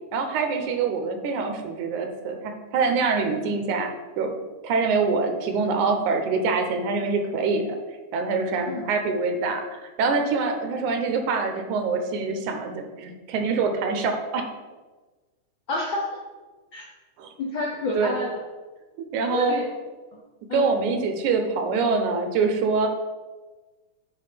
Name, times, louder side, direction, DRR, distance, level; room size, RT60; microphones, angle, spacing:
voice 1, 0.1-3.9 4.2-4.3 4.6-7.8 8.1-14.5 17.2-17.3 18.0-18.2 19.1-19.6 20.5-22.9, right 4 dB, 85° right, 5 dB, 2.4 m, -25 dB
voice 2, 15.7-16.2 16.7-16.9 17.4-18.4 19.3-19.7 20.5-20.6, left 2 dB, 70° left, -2 dB, 1.1 m, -28 dB
7.9 x 4.8 x 5.0 m, 1.3 s
omnidirectional pair, 3.4 m